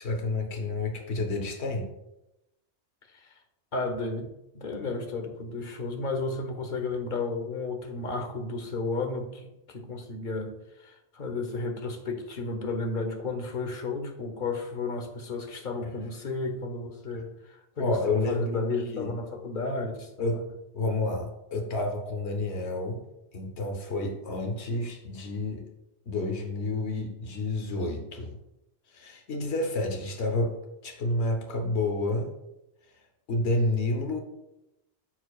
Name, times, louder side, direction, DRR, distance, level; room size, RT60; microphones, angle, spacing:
voice 1, 0.0-1.9 17.8-19.1 20.2-23.0 23.3-25.7 26.1-28.4 28.9-32.3 32.9-33.0 33.3-34.2, left 2 dB, 70° left, 3 dB, 1.3 m, -30 dB
voice 2, 3.7-4.3 4.5-20.4, left 3 dB, 50° left, 5 dB, 1.1 m, -33 dB
13.0 x 4.7 x 2.4 m, 0.90 s
omnidirectional pair, 1.2 m